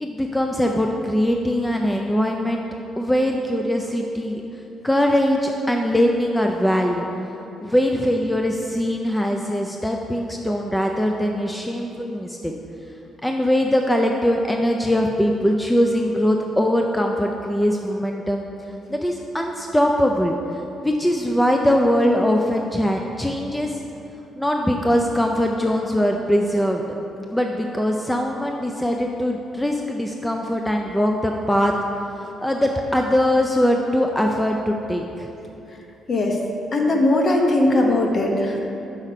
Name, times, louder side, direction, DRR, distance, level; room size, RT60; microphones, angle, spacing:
voice 1, 0.0-2.6 3.0-4.4 4.8-7.1 7.6-12.5 13.2-18.4 18.9-20.4 20.8-23.8 24.4-26.8 27.3-31.7 32.1-35.3, equal, 5° left, 2 dB, 0.4 m, -21 dB
voice 2, 36.1-36.4 36.7-38.6, left 1 dB, 40° left, 1 dB, 0.9 m, -19 dB
5.7 x 5.4 x 4.9 m, 2.9 s
cardioid pair, 90°, 0 cm